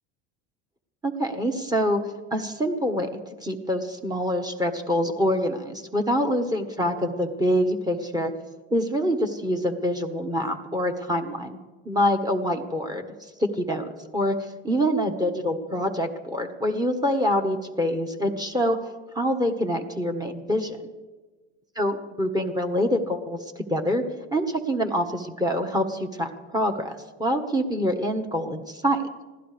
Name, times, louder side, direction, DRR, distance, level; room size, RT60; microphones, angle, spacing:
voice 1, 1.0-2.0 2.3-3.1 3.4-8.3 8.7-11.6 11.8-13.0 13.4-18.9 19.1-20.8 21.7-24.0 24.3-29.1, equal, 15° right, 5 dB, 1.4 m, -25 dB
25.5 x 16.5 x 3.4 m, 1.3 s
supercardioid pair, 110°, 31 cm